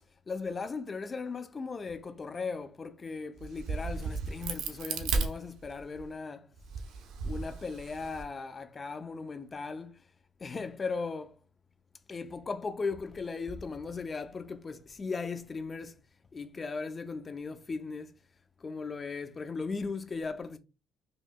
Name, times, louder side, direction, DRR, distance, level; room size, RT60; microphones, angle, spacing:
voice 1, 0.3-6.5 7.2-10.0 10.4-11.4 12.1-16.0 16.3-18.1 18.6-20.6, left 4 dB, 25° left, 0.5 m, -37 dB
Crack, 3.4-6.0 6.6-8.2, right 4 dB, 70° right, 0.8 m, -34 dB
4.8 x 3.1 x 2.2 m
cardioid pair, 115°, 0 cm